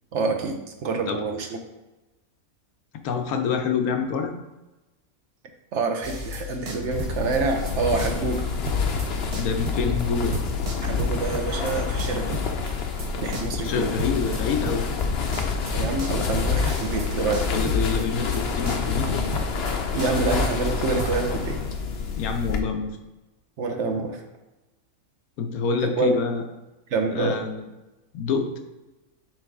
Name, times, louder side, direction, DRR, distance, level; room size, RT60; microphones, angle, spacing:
voice 1, 0.1-1.5 5.7-8.4 10.8-12.4 13.2-14.0 15.7-17.4 19.9-21.6 23.6-24.2 26.0-26.2 26.9-27.4, right 4 dB, 60° right, 4 dB, 0.9 m, -26 dB
voice 2, 3.0-4.3 9.3-10.4 13.6-15.0 17.5-19.3 22.2-22.9 25.4-26.4 27.1-27.6 28.1-28.6, left 5 dB, 80° left, 5 dB, 1.2 m, -26 dB
sound 1, 6.0-8.4 8.7-21.1, left 2 dB, 40° right, 0.5 m, -35 dB
sound 2, 6.9-22.6, left 5 dB, 55° left, 0.8 m, -27 dB
6.2 x 3.3 x 4.7 m, 1.0 s
omnidirectional pair, 1.5 m